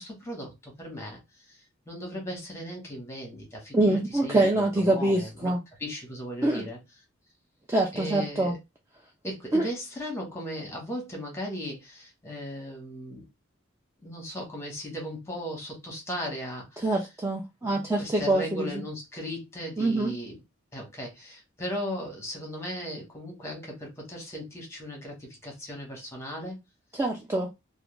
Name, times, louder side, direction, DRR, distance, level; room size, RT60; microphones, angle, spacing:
voice 1, 0.0-1.6 1.9-5.5 5.8-6.8 7.9-8.6 9.2-13.3 14.0-16.9 17.6-20.4 20.7-26.6, equal, 15° left, 1.0 m, -37 dB
voice 2, 3.7-5.6 6.4-6.6 7.7-8.5 9.5-9.6 16.8-18.7 19.8-20.1 27.0-27.5, right 2 dB, 15° right, 0.3 m, -25 dB
2.4 x 2.1 x 3.0 m
head